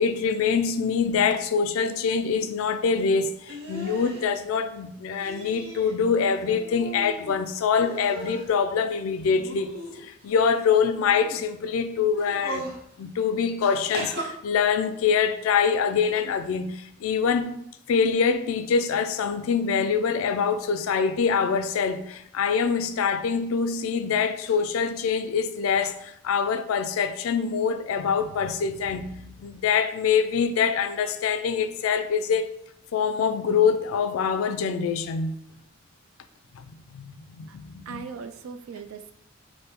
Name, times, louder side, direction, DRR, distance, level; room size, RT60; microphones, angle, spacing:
voice 1, 0.0-9.7 10.0-12.7 13.0-17.5 17.9-32.5 32.9-35.3 36.7-38.1, left 6 dB, 80° left, 0.3 m, -25 dB
sound 1, 3.5-4.2 5.2-5.9 6.3-7.4 7.8-8.5 9.2-10.3 11.1-11.4 12.1-12.8 13.9-14.2, equal, 50° right, 0.7 m, -37 dB
voice 2, 37.9-39.1, right 6 dB, 85° right, 0.3 m, -39 dB
3.4 x 2.6 x 3.0 m
head